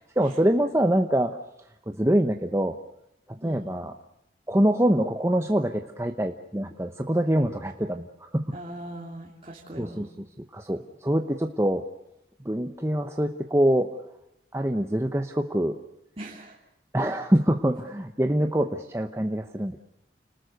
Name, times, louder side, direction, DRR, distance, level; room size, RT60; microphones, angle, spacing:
voice 1, 0.2-1.4 1.9-2.8 3.3-3.9 4.5-8.5 9.8-10.1 10.5-11.8 12.4-13.9 14.5-15.8 16.9-19.8, right 1 dB, 15° right, 5 dB, 0.9 m, -25 dB
voice 2, 3.4-3.8 8.5-10.0 16.2-16.6, right 1 dB, 35° right, -3 dB, 3.0 m, -40 dB
30.0 x 19.5 x 6.6 m, 0.83 s
head